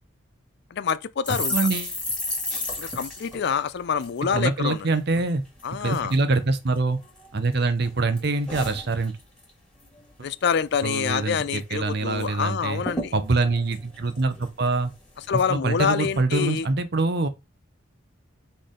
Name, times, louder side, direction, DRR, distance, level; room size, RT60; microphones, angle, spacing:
voice 1, 0.7-1.6 2.8-4.9 5.6-6.1 10.2-13.1 15.3-16.7, left 6 dB, 55° left, 0.4 m, -26 dB
sound 1, 1.2-4.8 5.1-5.3 5.6-6.2 6.7-7.5 7.8-9.5 9.8-10.0 10.3-10.9 11.2-11.3 11.6-12.3 12.5-12.6 12.8-14.7 15.2-15.5, left 2 dB, 5° left, 1.8 m, -34 dB
voice 2, 1.3-1.9 4.3-5.4 5.8-7.0 7.3-9.1 10.8-12.8 13.1-14.9 15.5-17.3, right 3 dB, 50° right, 0.7 m, -24 dB
4.2 x 3.4 x 3.7 m
head